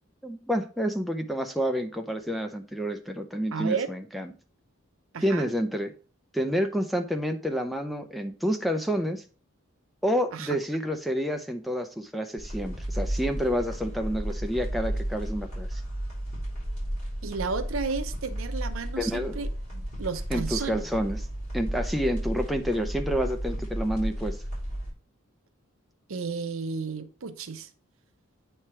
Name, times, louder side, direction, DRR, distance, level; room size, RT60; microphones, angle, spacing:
voice 1, 0.2-4.3 5.2-5.9 6.3-9.2 10.0-15.8 19.0-19.4 20.3-21.3 21.5-24.4, equal, ahead, 0.4 m, -29 dB
voice 2, 3.5-3.9 5.1-5.5 10.3-10.6 17.2-20.8 26.1-27.7, right 5 dB, 70° right, 0.7 m, -33 dB
sound 1, 12.4-24.9, equal, 35° left, 3.9 m, -33 dB
8.4 x 3.3 x 4.3 m
head